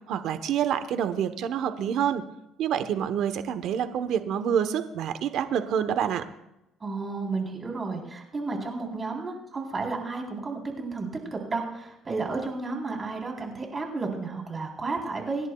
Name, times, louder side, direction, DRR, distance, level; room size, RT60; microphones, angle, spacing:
voice 1, 0.1-2.2 2.6-6.2, right 8 dB, 70° right, 10 dB, 1.0 m, -27 dB
voice 2, 6.8-15.5, right 3 dB, 30° right, 1 dB, 3.7 m, -32 dB
26.5 x 11.0 x 2.3 m, 0.86 s
cardioid pair, 95°, 0 cm